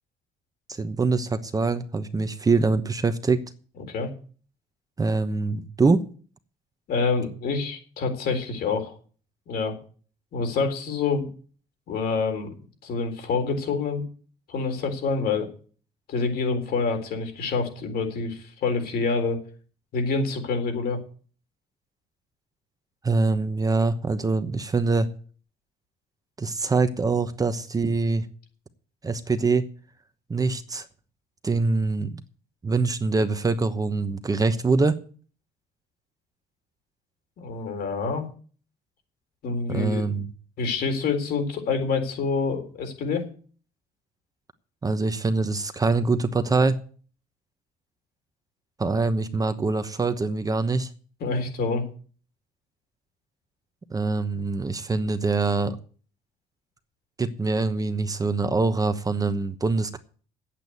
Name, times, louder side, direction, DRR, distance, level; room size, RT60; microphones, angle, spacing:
voice 1, 0.7-3.4 5.0-6.0 23.0-25.1 26.4-28.3 29.0-29.6 30.3-30.9 31.4-32.2 32.6-35.0 39.7-40.3 44.8-46.8 48.8-50.9 53.9-55.8 57.2-60.0, right 3 dB, 20° right, 9 dB, 1.0 m, -24 dB
voice 2, 6.9-8.9 9.5-9.7 10.3-11.3 11.9-12.5 12.8-14.0 14.5-15.5 16.1-19.4 19.9-21.0 37.4-38.3 39.4-40.0 40.6-43.3 51.2-51.8, left 4 dB, 65° left, 5 dB, 3.9 m, -27 dB
9.1 x 8.5 x 9.2 m, 0.42 s
cardioid pair, 110°, 17 cm